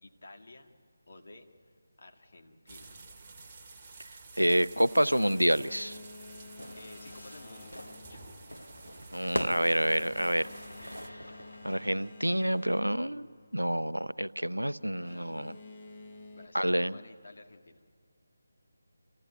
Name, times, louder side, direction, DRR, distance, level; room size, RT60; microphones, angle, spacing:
voice 1, 0.0-0.7 1.1-3.0 3.6-3.9 6.8-8.3 16.3-17.8, left 2 dB, 55° left, 4 dB, 2.0 m, -53 dB
sound 1, 2.7-11.1, right 3 dB, 25° right, 1.3 m, -51 dB
voice 2, 4.4-6.0 9.1-10.5 10.8-11.2 11.6-15.6 16.5-17.0, right 1 dB, 90° right, 16 dB, 0.5 m, -28 dB
Boat Water vehicle, 4.6-14.1 14.9-16.5, left 3 dB, 30° left, 1.6 m, -51 dB
Fire / Fireworks, 6.6-12.1, equal, 90° left, 1.2 m, -42 dB
27.5 x 15.0 x 9.4 m, 2.1 s
figure-of-eight pair, 155°, 0 cm